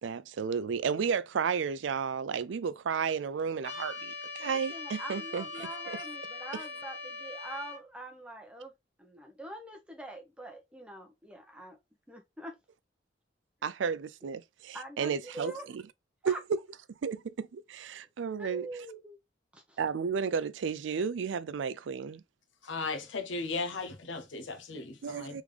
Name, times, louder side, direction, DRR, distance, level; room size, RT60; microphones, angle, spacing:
voice 1, 0.0-6.0 13.6-15.8 16.2-16.6 17.0-18.7 19.8-22.2 25.0-25.4, right 6 dB, 80° right, 0.4 m, -33 dB
Trumpet, 3.6-7.8, left 3 dB, 55° left, 1.3 m, -41 dB
voice 2, 4.4-8.7 9.0-11.8 12.1-12.6 14.7-15.7 16.3-16.4 17.9-18.0 18.4-19.2 19.5-19.8, right 1 dB, 5° right, 0.8 m, -44 dB
voice 3, 22.6-25.4, left 3 dB, 85° left, 0.8 m, -36 dB
3.6 x 3.6 x 3.2 m
head